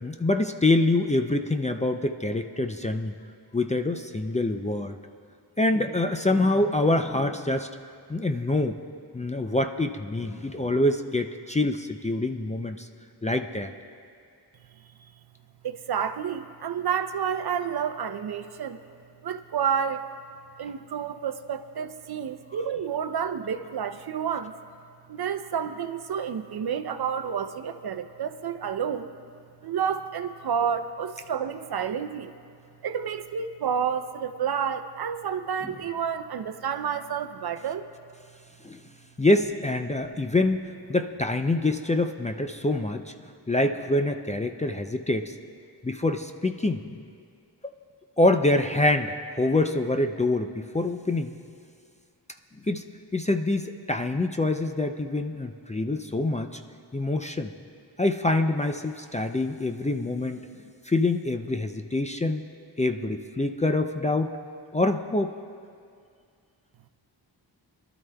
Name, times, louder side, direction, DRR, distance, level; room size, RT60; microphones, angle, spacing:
voice 1, 0.0-3.1 3.5-5.0 5.6-7.7 8.1-8.7 9.1-12.9 13.2-13.7 35.6-35.7 38.6-38.8 39.2-40.6 40.9-43.1 43.5-45.4 45.8-47.0 48.2-51.3 52.7-52.8 53.1-56.6 56.9-57.5 58.0-60.5 60.9-62.4 62.8-64.4 64.7-65.3, left 2 dB, 15° left, 6 dB, 0.4 m, -25 dB
voice 2, 15.6-18.8 19.2-20.1 20.6-24.5 25.1-29.1 29.6-32.3 32.8-37.9, right 7 dB, 60° right, 9 dB, 0.6 m, -30 dB
26.0 x 12.5 x 2.3 m, 2.3 s
wide cardioid pair, 90°, 42 cm